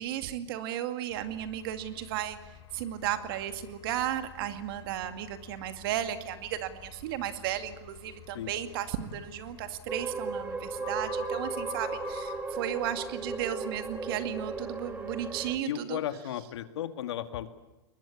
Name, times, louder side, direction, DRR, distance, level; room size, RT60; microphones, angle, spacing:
voice 1, 0.0-2.4 2.7-16.0, right 11 dB, 55° right, 8 dB, 2.3 m, -34 dB
sound 1, 1.1-15.6, left 9 dB, 30° left, 3.3 m, -49 dB
sound 2, 9.9-15.6, right 4 dB, 10° right, 1.3 m, -36 dB
voice 2, 15.6-17.5, left 11 dB, 70° left, 9 dB, 2.0 m, -34 dB
21.5 x 21.0 x 8.7 m, 1.0 s
hypercardioid pair, 140°, 14 cm